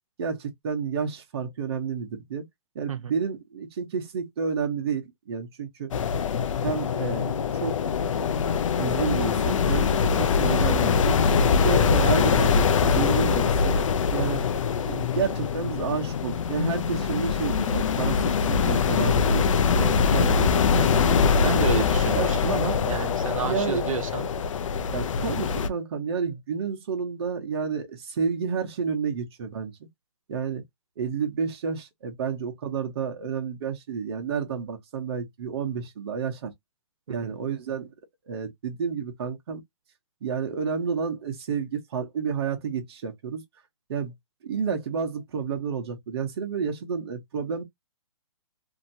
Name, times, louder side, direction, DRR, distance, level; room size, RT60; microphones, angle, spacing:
voice 1, 0.2-2.4 2.7-5.9 6.6-8.5 8.8-13.8 14.1-14.4 14.8-19.5 19.7-21.7 22.1-22.3 23.4-23.8 24.8-29.9 30.3-30.6 31.0-36.5 37.1-37.9 38.3-39.6 40.2-43.4 43.9-44.1 44.4-47.6, right 6 dB, 50° right, 1.0 m, -30 dB
sound 1, 5.9-25.7, left 6 dB, 75° left, 0.5 m, -23 dB
voice 2, 21.4-24.3 37.1-37.3, right 7 dB, 90° right, 0.7 m, -31 dB
2.8 x 2.7 x 2.7 m
hypercardioid pair, 160°, 17 cm